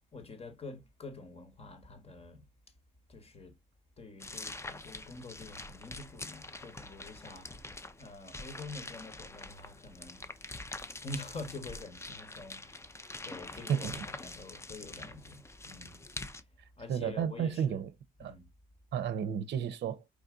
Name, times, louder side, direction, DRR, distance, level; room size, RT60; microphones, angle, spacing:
voice 1, 0.1-2.5 3.1-3.6 4.0-10.3 11.0-13.0 13.2-16.5 16.8-17.8 18.2-18.5, left 2 dB, 30° left, 1.3 m, -47 dB
sound 1, 4.2-16.4, left 2 dB, 15° left, 0.5 m, -45 dB
voice 2, 13.7-14.0 16.9-17.9 18.2-18.3 18.9-20.0, right 8 dB, 60° right, 0.6 m, -32 dB
4.9 x 2.6 x 3.7 m
cardioid pair, 90°, 20 cm